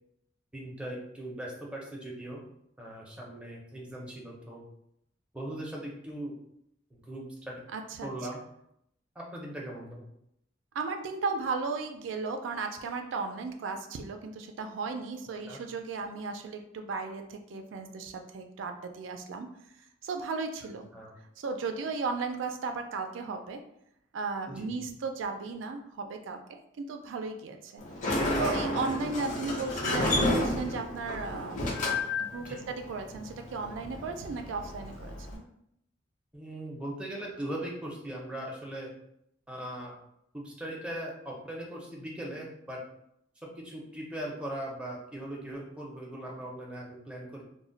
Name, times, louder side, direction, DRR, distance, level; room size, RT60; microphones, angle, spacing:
voice 1, 0.5-2.4 2.8-4.6 5.3-6.3 6.9-7.6 8.0-8.4 9.2-10.1 15.5-15.6 20.9-21.1 24.5-24.9 32.5-32.6 36.3-38.9 39.5-39.9 40.3-42.8 43.4-47.4, right 1 dB, 5° right, -3 dB, 0.5 m, -39 dB
voice 2, 7.7-8.1 10.7-19.5 20.0-20.9 21.4-23.6 24.1-27.8 28.4-31.6 32.2-35.4, right 4 dB, 90° right, 6 dB, 0.3 m, -35 dB
Sliding door, 27.8-35.4, left 1 dB, 40° left, 0.6 m, -31 dB
2.1 x 2.1 x 3.7 m, 0.76 s
head